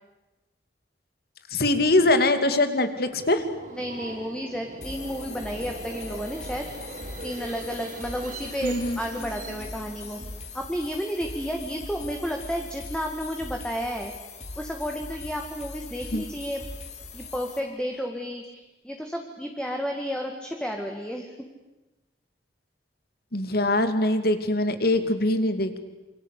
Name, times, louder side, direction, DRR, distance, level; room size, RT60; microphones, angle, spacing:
voice 1, 1.5-3.4 8.6-9.0 16.1-16.2 23.3-25.8, left 2 dB, 60° left, 9 dB, 2.5 m, -23 dB
Subway metro underground, 2.9-10.6, right 2 dB, 50° right, 4.6 m, -41 dB
voice 2, 3.7-6.7 7.2-10.2 10.5-14.1 14.6-16.6 17.1-21.3, equal, 5° left, 2 dB, 2.0 m, -32 dB
sound 1, 4.8-17.6, left 3 dB, 40° left, 3.5 m, -41 dB
27.5 x 24.5 x 8.5 m, 1.1 s
head